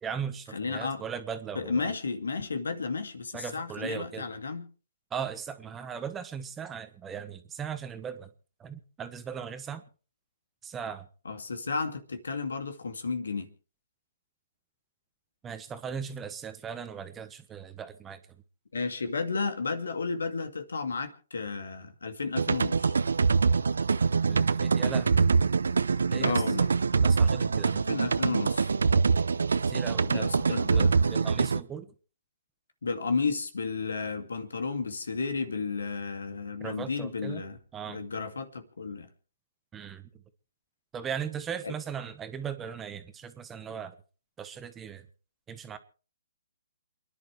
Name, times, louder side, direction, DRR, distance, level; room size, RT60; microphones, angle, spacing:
voice 1, 0.0-1.9 3.3-4.3 5.1-8.3 8.6-9.8 10.6-11.1 15.4-18.2 24.3-25.3 26.1-26.4 27.0-27.9 29.7-31.9 36.6-37.4 37.7-38.0 39.7-40.1 40.9-43.9 44.4-45.1 45.5-45.8, right 7 dB, 15° right, 10 dB, 1.2 m, -38 dB
voice 2, 0.5-1.0 1.6-4.7 11.2-13.5 18.7-22.9 26.2-26.7 27.7-28.7 30.0-30.9 32.8-37.6 37.9-39.1 41.6-41.7, left 4 dB, 80° left, 8 dB, 2.4 m, -33 dB
sound 1, 22.3-31.6, right 5 dB, 80° right, 0.7 m, -24 dB
28.5 x 11.0 x 3.3 m, 0.38 s
hypercardioid pair, 140°, 0 cm